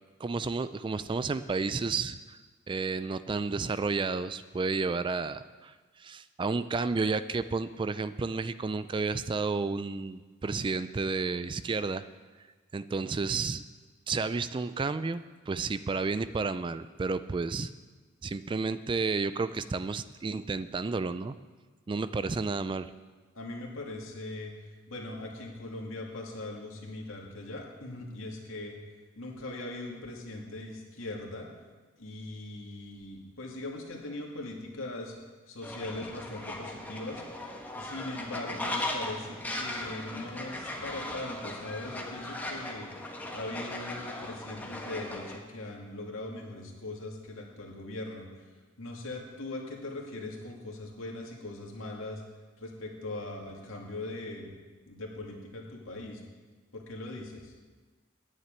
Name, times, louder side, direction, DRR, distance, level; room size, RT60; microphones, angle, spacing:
voice 1, 0.2-2.4 2.7-12.0 12.7-13.6 14.1-17.7 18.2-21.4 21.9-22.9, right 4 dB, 25° right, 14 dB, 0.3 m, -31 dB
voice 2, 23.3-24.5 24.9-28.7 29.2-31.5 32.0-35.1 35.5-37.2 37.7-42.9 43.3-48.3 48.8-52.2 52.6-54.5 54.9-56.2 56.7-57.5, left 2 dB, 80° left, 0 dB, 2.3 m, -40 dB
Fowl, 35.6-45.4, left 1 dB, 10° left, 1.2 m, -38 dB
9.6 x 7.4 x 9.1 m, 1.3 s
head